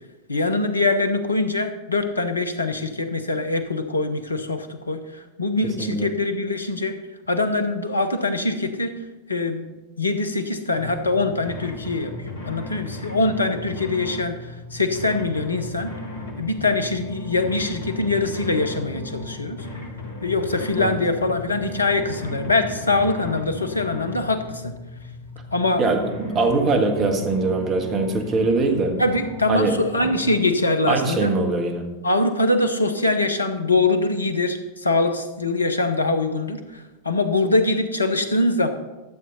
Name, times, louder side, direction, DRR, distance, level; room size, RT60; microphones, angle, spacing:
voice 1, 0.3-7.0 7.3-8.9 9.3-9.7 10.0-15.9 16.4-19.7 20.2-24.7 25.5-25.8 29.0-31.3 32.0-38.7, left 2 dB, 80° left, 9 dB, 0.9 m, -23 dB
voice 2, 5.6-6.1 20.8-21.0 25.8-29.0 29.5-29.7 30.9-31.9, right 3 dB, 30° right, 4 dB, 1.6 m, -22 dB
sound 1, 10.7-30.4, left 2 dB, 65° left, 2.0 m, -36 dB
12.0 x 7.5 x 4.1 m, 1.1 s
figure-of-eight pair, 90°, 0 cm